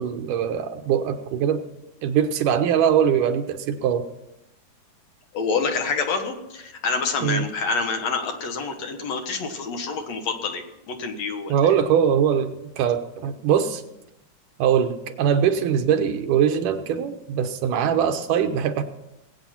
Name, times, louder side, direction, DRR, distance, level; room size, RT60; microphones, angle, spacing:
voice 1, 0.0-1.6 2.0-4.1 7.2-7.5 11.5-13.8 14.6-18.8, right 8 dB, 85° right, 7 dB, 2.6 m, -22 dB
voice 2, 5.3-11.6, left 4 dB, 60° left, 5 dB, 2.4 m, -27 dB
20.0 x 8.8 x 5.8 m, 0.90 s
omnidirectional pair, 3.6 m